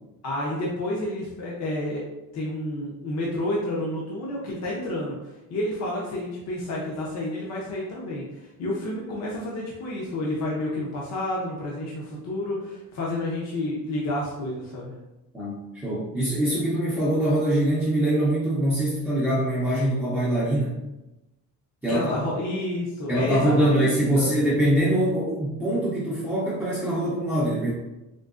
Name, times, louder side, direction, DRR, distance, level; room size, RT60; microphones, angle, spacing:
voice 1, 0.2-2.0 2.3-14.9 21.9-23.8 24.1-24.4, left 1 dB, 50° left, -4 dB, 0.6 m, -30 dB
voice 2, 15.3-20.8 21.8-22.1 23.1-27.7, right 1 dB, 5° right, -9 dB, 0.5 m, -23 dB
3.8 x 2.7 x 2.4 m, 0.98 s
cardioid pair, 175°, 33 cm